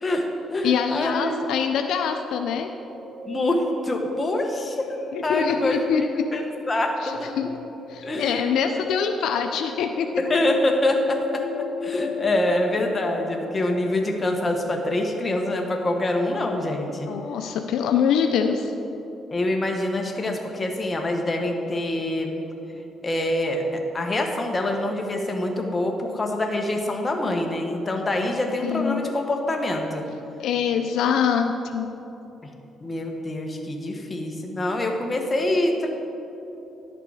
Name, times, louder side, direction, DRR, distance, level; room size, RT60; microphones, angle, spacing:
voice 1, 0.0-1.4 3.3-5.0 5.2-7.3 8.0-8.5 10.2-17.1 19.3-22.3 23.0-30.0 32.8-35.9, left 1 dB, 30° left, 2 dB, 1.2 m, -25 dB
voice 2, 0.6-2.7 5.1-6.0 7.0-7.5 7.9-10.1 17.1-18.7 28.6-29.0 30.4-31.9, left 7 dB, 80° left, 5 dB, 0.5 m, -24 dB
sound 1, 2.8-14.3, left 3 dB, 55° left, 1.7 m, -38 dB
11.0 x 6.7 x 4.8 m, 3.0 s
cardioid pair, 90°, 0 cm